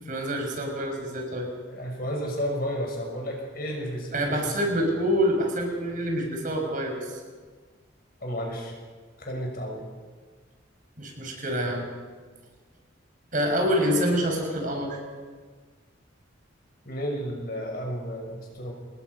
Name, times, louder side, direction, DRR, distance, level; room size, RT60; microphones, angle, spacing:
voice 1, 0.1-1.5 4.1-7.2 11.0-11.8 13.3-15.0, equal, 40° right, 1 dB, 6.0 m, -26 dB
voice 2, 1.7-4.6 8.2-8.7 9.2-9.9 16.8-18.7, equal, 50° left, 1 dB, 6.3 m, -32 dB
27.5 x 20.5 x 5.6 m, 1.5 s
head